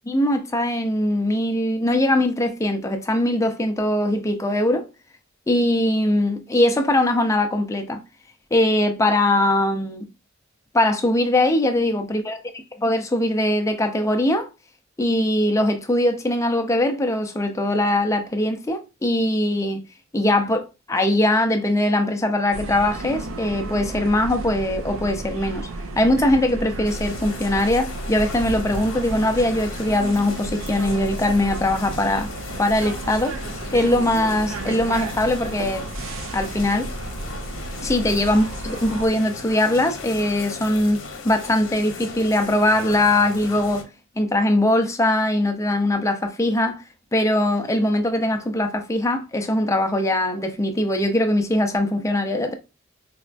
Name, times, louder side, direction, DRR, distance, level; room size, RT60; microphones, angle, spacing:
voice 1, 0.1-4.9 5.5-8.0 8.5-10.1 10.7-12.4 12.8-14.5 15.0-19.8 20.1-25.7 26.0-32.3 32.6-33.4 33.7-35.9 36.3-36.9 37.8-43.9 44.2-46.8 47.1-52.5, left 1 dB, 15° left, 0.4 m, -21 dB
sound 1, 22.5-39.1, right 2 dB, 85° right, 0.5 m, -33 dB
sound 2, 26.8-43.8, left 3 dB, 90° left, 0.7 m, -37 dB
4.1 x 2.2 x 2.4 m
head